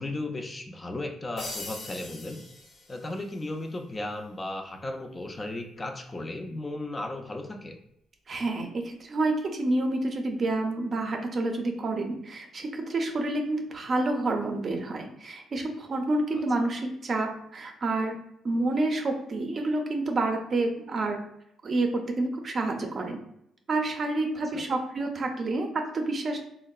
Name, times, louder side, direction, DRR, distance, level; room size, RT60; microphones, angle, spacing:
voice 1, 0.0-2.4 2.9-7.7 16.3-16.4 24.5-24.6, left 2 dB, 25° left, 4 dB, 0.4 m, -35 dB
sound 1, 1.4-3.4, left 2 dB, 55° left, 0.7 m, -41 dB
voice 2, 8.3-18.2 18.4-21.2 21.6-23.2 23.7-26.4, right 2 dB, 45° right, 4 dB, 0.5 m, -28 dB
3.5 x 2.1 x 2.3 m, 0.76 s
cardioid pair, 90°, 0 cm